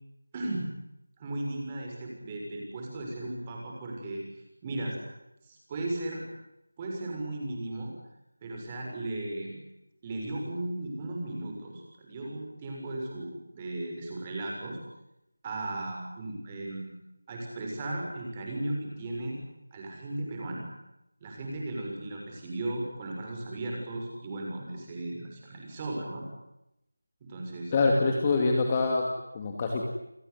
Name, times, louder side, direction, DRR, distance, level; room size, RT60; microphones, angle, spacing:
voice 1, 0.3-0.7 1.2-4.2 4.6-5.0 5.4-6.2 6.8-8.0 8.4-9.6 10.0-14.8 15.4-16.9 17.3-19.4 19.7-20.7 21.2-26.2 27.2-27.7, right 2 dB, 15° right, 0 dB, 6.7 m, -36 dB
voice 2, 27.7-29.8, left 3 dB, 20° left, 1 dB, 2.5 m, -25 dB
29.0 x 19.0 x 9.7 m, 0.86 s
figure-of-eight pair, 175°, 0 cm